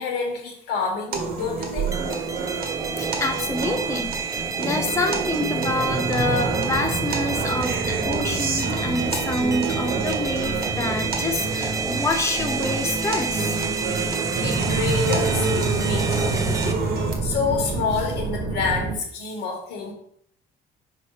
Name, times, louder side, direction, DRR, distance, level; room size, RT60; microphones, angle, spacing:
voice 1, 0.0-1.9 13.9-19.9, left 5 dB, 85° left, 1 dB, 2.0 m, -29 dB
sound 1, 1.1-17.1, right 4 dB, 65° right, 1.5 m, -29 dB
sound 2, 1.6-19.0, right 3 dB, 50° right, 1.5 m, -30 dB
sound 3, 1.9-16.7, right 5 dB, 20° right, 0.6 m, -29 dB
voice 2, 3.0-13.6, left 2 dB, 15° left, 4 dB, 0.7 m, -27 dB
5.4 x 4.2 x 5.0 m, 0.65 s
cardioid pair, 110°, 17 cm